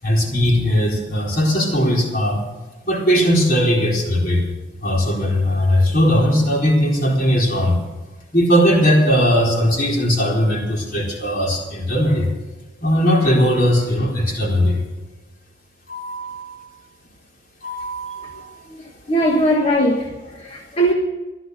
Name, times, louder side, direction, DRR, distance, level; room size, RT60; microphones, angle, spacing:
voice 1, 0.0-2.4 2.8-4.5 4.8-7.8 8.3-12.3 12.8-14.8 15.9-16.6 17.6-18.5, equal, 50° left, 4.3 m, -18 dB
voice 2, 19.1-20.9, equal, 30° left, 1.3 m, -19 dB
16.0 x 12.5 x 6.6 m
head